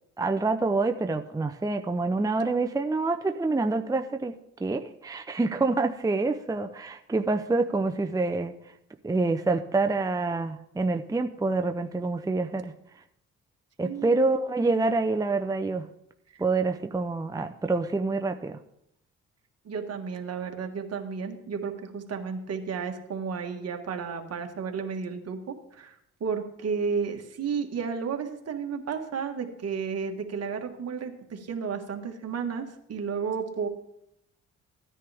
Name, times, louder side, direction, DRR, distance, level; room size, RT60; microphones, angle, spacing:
voice 1, 0.2-4.3 4.6-8.7 9.0-13.0 13.8-15.9 16.4-18.6, right 3 dB, 10° right, 7 dB, 0.6 m, -27 dB
voice 2, 13.8-14.3 16.3-16.4 19.6-25.9 26.2-33.7, right 6 dB, 55° right, 4 dB, 1.8 m, -32 dB
16.0 x 10.0 x 3.5 m, 0.79 s
cardioid pair, 90°, 30 cm